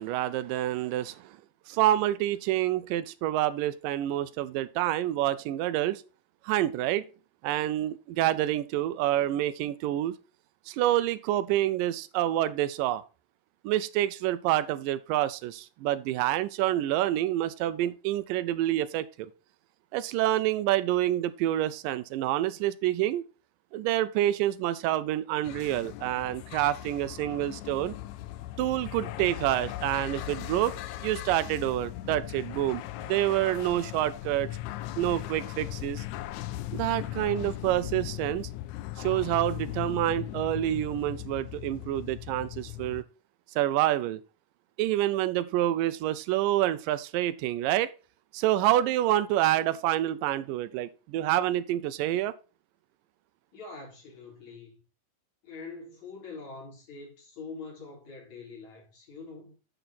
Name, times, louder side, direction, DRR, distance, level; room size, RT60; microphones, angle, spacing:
voice 1, 0.0-1.4 1.7-6.0 6.4-7.0 7.4-10.2 10.7-13.0 13.6-19.3 19.9-23.2 23.7-27.9 28.6-34.5 35.0-36.1 36.7-38.5 39.0-43.0 43.6-44.2 44.8-47.9 48.3-52.3, right 13 dB, 90° right, 2.2 m, -27 dB
sound 1, 25.4-43.0, left 15 dB, 80° left, 1.7 m, -38 dB
voice 2, 53.5-54.8 55.4-59.6, left 4 dB, 55° left, 5.0 m, -44 dB
10.0 x 5.3 x 4.2 m
omnidirectional pair, 3.9 m